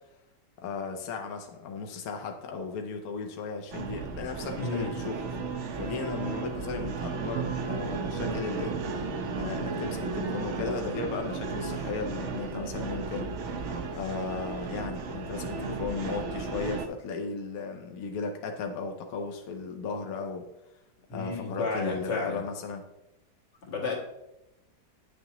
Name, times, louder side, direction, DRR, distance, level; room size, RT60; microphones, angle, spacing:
voice 1, 0.6-5.2 5.8-8.8 9.4-13.3 13.6-20.5 21.1-22.8, left 4 dB, 65° left, 4 dB, 1.2 m, -35 dB
sound 1, 3.7-16.9, right 4 dB, 60° right, 0.8 m, -34 dB
voice 2, 4.6-5.0 21.1-22.4 23.6-24.0, left 3 dB, 85° left, -3 dB, 2.4 m, -32 dB
9.5 x 6.7 x 3.0 m, 0.91 s
omnidirectional pair, 1.9 m